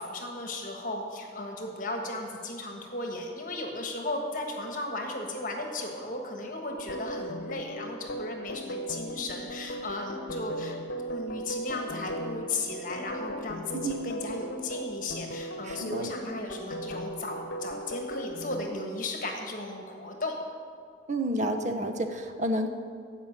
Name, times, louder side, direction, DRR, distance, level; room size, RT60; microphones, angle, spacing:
voice 1, 0.0-10.8 11.0-20.4, left 2 dB, 45° left, 2 dB, 1.5 m, -36 dB
sound 1, 6.7-18.7, equal, 75° left, 0.9 m, -37 dB
voice 2, 13.7-14.1 15.7-16.1 21.1-22.7, right 1 dB, 40° right, 6 dB, 0.9 m, -30 dB
15.5 x 5.6 x 8.9 m, 2.3 s
head